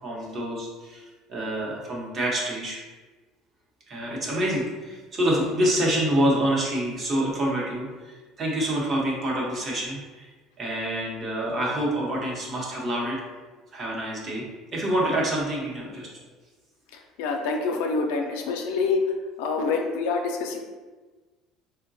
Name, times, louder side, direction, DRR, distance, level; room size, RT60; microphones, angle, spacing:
voice 1, 0.0-2.8 3.9-10.3 10.6-13.2 13.7-14.5 14.7-16.1, right 1 dB, 40° right, -3 dB, 0.9 m, -27 dB
voice 2, 17.2-19.0 19.4-20.6, left 4 dB, 90° left, 2 dB, 0.4 m, -26 dB
3.7 x 2.1 x 2.6 m, 1.3 s
cardioid pair, 120°, 0 cm